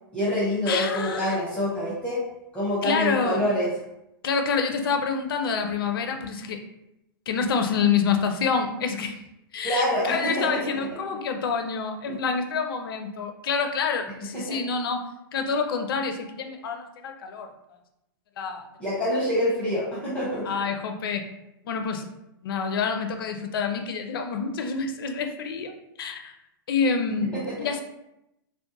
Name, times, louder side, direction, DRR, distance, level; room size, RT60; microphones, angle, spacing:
voice 1, 0.1-2.2 2.5-3.7 9.6-10.6 12.1-12.2 14.3-14.6 18.8-20.4 27.3-27.7, equal, 10° left, -8 dB, 0.9 m, -26 dB
voice 2, 0.7-1.4 2.8-3.4 4.2-6.6 7.3-9.2 9.5-15.0 15.3-17.5 18.4-18.7 20.4-21.3 21.6-22.1 22.4-25.7 26.0-26.3 26.7-27.8, left 5 dB, 70° left, 5 dB, 0.5 m, -27 dB
2.5 x 2.1 x 2.8 m, 0.87 s
hypercardioid pair, 115°, 12 cm